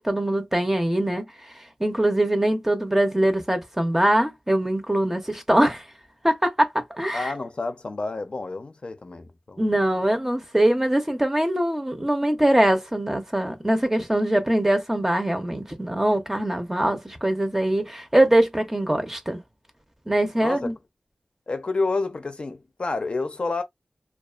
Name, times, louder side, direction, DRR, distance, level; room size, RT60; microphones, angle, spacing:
voice 1, 0.0-5.9 6.2-7.3 9.6-19.4 20.1-20.7, right 1 dB, 15° right, 0.6 m, -22 dB
voice 2, 7.1-9.6 20.4-20.7 21.5-23.6, left 3 dB, 55° left, 0.5 m, -29 dB
2.4 x 2.3 x 2.3 m
wide cardioid pair, 55°, 2 cm